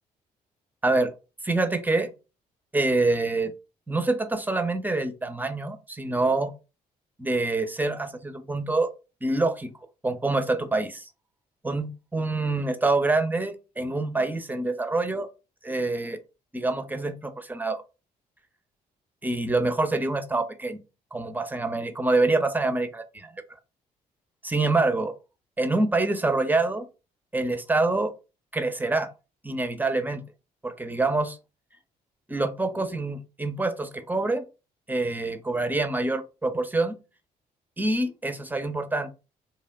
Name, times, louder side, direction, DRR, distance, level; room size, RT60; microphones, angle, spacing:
voice 1, 1.4-2.1 2.7-3.5 3.9-6.5 7.2-8.9 9.2-9.7 10.0-11.0 11.6-15.3 15.6-16.2 16.5-17.8 19.2-20.8 21.1-23.3 24.4-25.1 25.6-26.8 27.3-28.1 28.5-29.1 29.4-30.2 30.6-31.4 32.3-34.4 34.9-37.0 37.8-39.1, right 2 dB, 10° right, 0.5 m, -26 dB
2.8 x 2.1 x 2.4 m
figure-of-eight pair, 45°, 21 cm